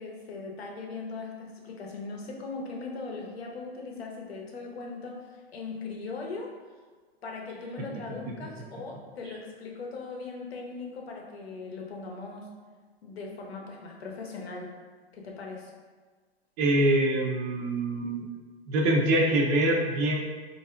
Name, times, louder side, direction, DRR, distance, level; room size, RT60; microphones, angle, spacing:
voice 1, 0.0-6.5 7.2-12.5 13.0-14.7 15.1-15.7, left 3 dB, 80° left, 0 dB, 0.7 m, -39 dB
voice 2, 16.6-18.3 18.7-20.1, right 1 dB, 30° right, 0 dB, 0.4 m, -24 dB
3.3 x 2.5 x 2.4 m, 1.4 s
hypercardioid pair, 110°, 31 cm